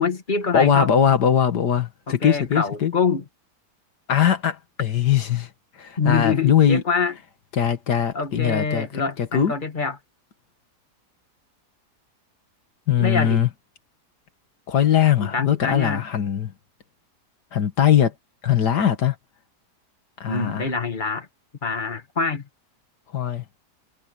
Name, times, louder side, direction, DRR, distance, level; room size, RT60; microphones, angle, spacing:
voice 1, 0.0-0.9 2.1-3.2 6.0-7.1 8.1-10.0 13.0-13.4 15.2-16.0 20.3-21.3 21.6-22.5, left 5 dB, 30° left, 1.9 m, -25 dB
voice 2, 0.5-2.9 4.1-5.5 5.8-6.8 7.5-8.9 9.2-9.5 12.9-13.5 14.7-16.5 17.5-18.1 18.4-19.2 20.2-20.7 23.1-23.4, left 9 dB, 85° left, 2.1 m, -20 dB
omnidirectional pair, 1.8 m